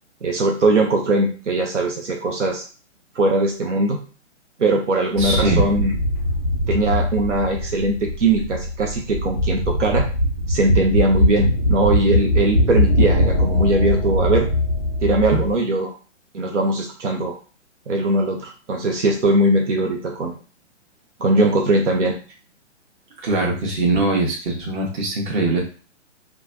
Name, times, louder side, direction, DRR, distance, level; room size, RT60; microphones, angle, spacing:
voice 1, 0.2-2.6 3.1-4.0 4.6-5.9 6.7-10.1 10.5-14.5 15.0-15.9 16.3-17.3 17.9-20.3 21.2-22.2, right 2 dB, 80° right, 2 dB, 0.7 m, -20 dB
sound 1, 5.2-15.5, left 1 dB, 10° right, 0.3 m, -21 dB
voice 2, 5.2-5.6 15.3-15.4 23.2-25.6, right 2 dB, 45° right, -1 dB, 1.1 m, -21 dB
3.0 x 2.3 x 2.5 m, 0.37 s
figure-of-eight pair, 130°, 36 cm